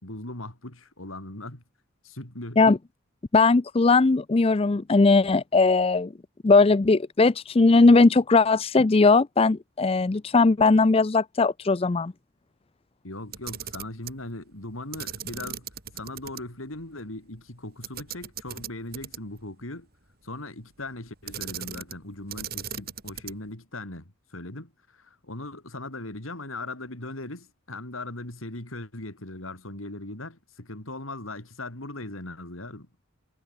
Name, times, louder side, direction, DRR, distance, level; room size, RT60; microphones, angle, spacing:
voice 1, 0.0-1.6 2.0-2.6 13.0-15.7 15.9-19.9 20.2-24.0 24.3-33.0, left 2 dB, 90° left, 4.5 m, -39 dB
voice 2, 3.3-6.1 6.4-12.1, left 3 dB, 30° left, 0.5 m, -19 dB
Camera, 13.2-14.2 14.9-16.4 16.7-16.8 17.8-19.4 21.3-22.0 22.3-23.5, right 9 dB, 50° right, 2.9 m, -37 dB
head